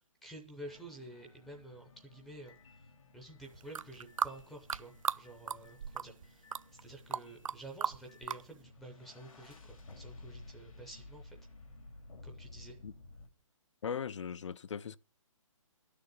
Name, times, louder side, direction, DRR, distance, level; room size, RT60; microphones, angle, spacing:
voice 1, 0.2-2.9 3.1-6.5 6.8-11.4 12.2-12.8, right 1 dB, ahead, 0.7 m, -50 dB
sound 1, 0.7-13.3, left 2 dB, 75° left, 2.7 m, -55 dB
sound 2, 3.6-5.2 5.5-6.3 6.5-7.5 7.8-8.4, right 7 dB, 70° right, 0.6 m, -35 dB
voice 2, 13.8-15.0, left 7 dB, 60° left, 0.6 m, -39 dB
11.5 x 6.8 x 9.6 m
hypercardioid pair, 170°, 17 cm